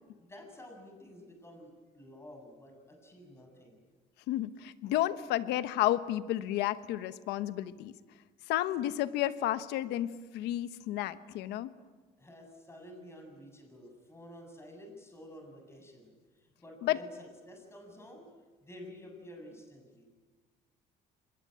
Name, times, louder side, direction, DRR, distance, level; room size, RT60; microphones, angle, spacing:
voice 1, 0.2-3.9 12.2-18.3 18.6-20.1, equal, 15° left, 3 dB, 7.4 m, -51 dB
voice 2, 4.3-7.9 8.5-11.7 16.8-17.0, left 13 dB, 90° left, 13 dB, 1.1 m, -31 dB
26.0 x 22.0 x 9.2 m, 1.3 s
cardioid pair, 110°, 17 cm